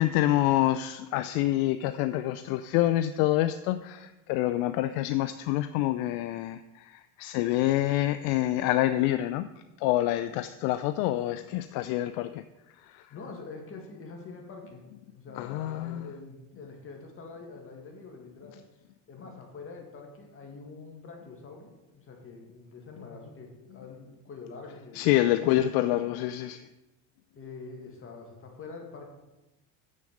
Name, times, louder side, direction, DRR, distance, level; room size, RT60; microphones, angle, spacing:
voice 1, 0.0-9.5 9.8-12.4 12.8-13.1 15.3-16.1 24.9-26.7, left 14 dB, 65° left, 0.5 m, -27 dB
voice 2, 13.1-14.8 15.1-18.6 19.1-26.1 27.4-29.1, left 4 dB, 35° left, 1.9 m, -45 dB
7.7 x 6.4 x 5.1 m
supercardioid pair, 115°, 40 cm